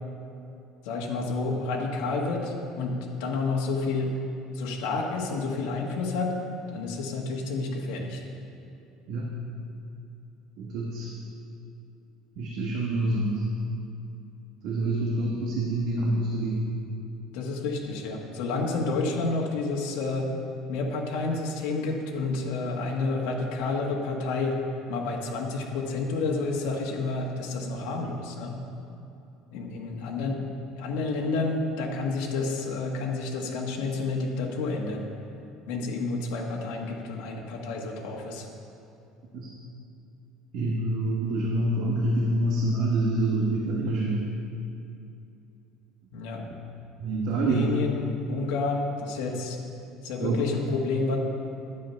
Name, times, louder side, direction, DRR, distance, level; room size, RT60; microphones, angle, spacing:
voice 1, 0.8-2.9 3.2-4.2 4.5-6.3 6.7-8.2 17.3-20.3 20.7-24.5 24.9-28.6 29.5-30.4 30.8-35.0 35.7-38.4 46.1-46.4 47.3-49.6 50.0-51.2, left 3 dB, 75° left, -1 dB, 1.5 m, -30 dB
voice 2, 10.6-11.1 12.4-13.5 14.6-16.6 39.3-39.5 40.5-44.2 47.0-47.7 50.2-50.5, right 2 dB, 50° right, -2 dB, 1.3 m, -26 dB
11.5 x 8.7 x 5.7 m, 2.7 s
cardioid pair, 175°, 0 cm